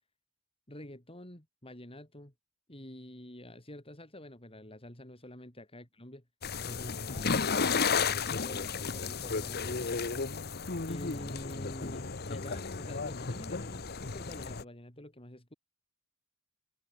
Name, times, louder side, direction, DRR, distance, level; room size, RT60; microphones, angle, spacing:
voice 1, 0.7-2.3 2.7-6.2 6.7-7.9 8.1-9.9 10.9-15.5, left 1 dB, 25° left, 6.7 m, -47 dB
sound 1, 6.4-14.6, left 5 dB, 50° left, 1.3 m, -33 dB
head